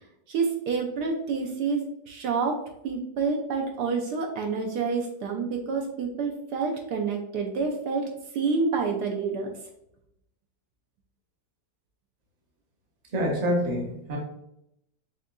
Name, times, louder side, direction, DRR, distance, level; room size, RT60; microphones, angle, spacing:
voice 1, 0.3-2.6 2.8-8.1 8.3-9.5, right 4 dB, 75° right, 2 dB, 1.1 m, -28 dB
voice 2, 13.1-14.2, equal, 35° right, -1 dB, 0.7 m, -26 dB
6.3 x 2.5 x 2.2 m, 0.80 s
omnidirectional pair, 1.9 m